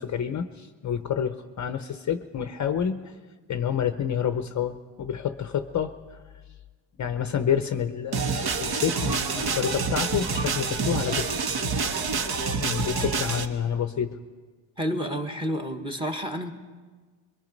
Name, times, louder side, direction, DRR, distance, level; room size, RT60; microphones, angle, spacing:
voice 1, 0.0-3.1 3.5-6.2 7.0-11.3 12.6-14.2, left 8 dB, 35° left, 8 dB, 0.7 m, -28 dB
sound 1, 8.1-13.5, right 4 dB, 50° right, 1.3 m, -27 dB
voice 2, 14.8-16.5, equal, 10° right, 5 dB, 1.3 m, -30 dB
23.0 x 23.0 x 5.3 m, 1.4 s
cardioid pair, 150°, 50 cm